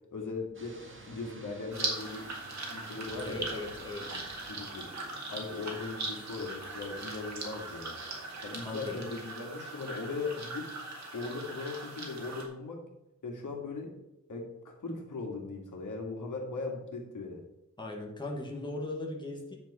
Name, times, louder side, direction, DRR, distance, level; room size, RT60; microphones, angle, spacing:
voice 1, 0.1-0.8 1.1-2.2 2.7-3.4 4.5-4.9 5.3-8.0 8.4-10.7 11.1-12.8 13.2-14.0 14.3-17.4, left 3 dB, 85° left, 1 dB, 2.1 m, -38 dB
sound 1, 0.5-8.8, right 2 dB, 40° right, 1.8 m, -53 dB
sound 2, 1.7-12.4, right 2 dB, 65° right, 2.2 m, -40 dB
voice 2, 3.2-4.2 8.6-9.0 17.8-19.6, left 2 dB, 15° left, -1 dB, 1.6 m, -38 dB
9.8 x 7.4 x 4.3 m, 0.92 s
wide cardioid pair, 160°, 30 cm